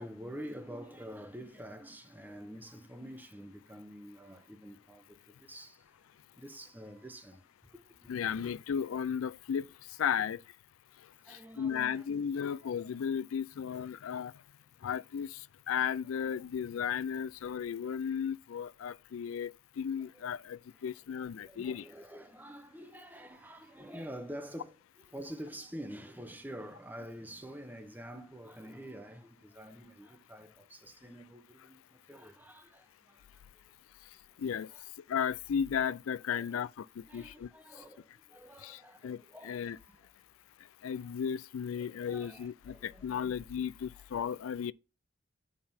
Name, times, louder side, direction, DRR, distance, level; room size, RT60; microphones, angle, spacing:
voice 1, 0.0-5.8 6.4-7.4 7.7-8.2 11.3-12.6 20.1-20.3 21.4-31.8 32.1-33.2 34.7-34.8 36.3-36.6 37.1-40.0 41.8-43.3, equal, 10° right, 0.9 m, -47 dB
voice 2, 8.1-10.4 11.3-14.3 14.8-21.9 34.4-34.7 35.1-37.5 38.6-39.8 40.8-44.7, left 7 dB, 90° left, 0.4 m, -35 dB
8.3 x 5.7 x 4.3 m
head